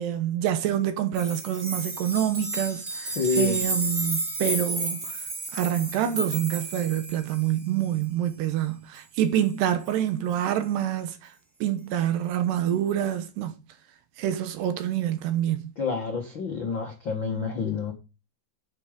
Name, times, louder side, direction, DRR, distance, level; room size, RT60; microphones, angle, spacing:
voice 1, 0.0-5.1 5.5-11.3 11.6-13.5 14.2-15.6, right 11 dB, 75° right, 2.8 m, -26 dB
sound 1, 1.1-7.6 9.9-10.0, right 1 dB, 20° right, 3.4 m, -32 dB
voice 2, 3.1-3.6 15.8-17.9, left 5 dB, 90° left, 1.0 m, -28 dB
11.5 x 6.7 x 5.1 m
omnidirectional pair, 5.5 m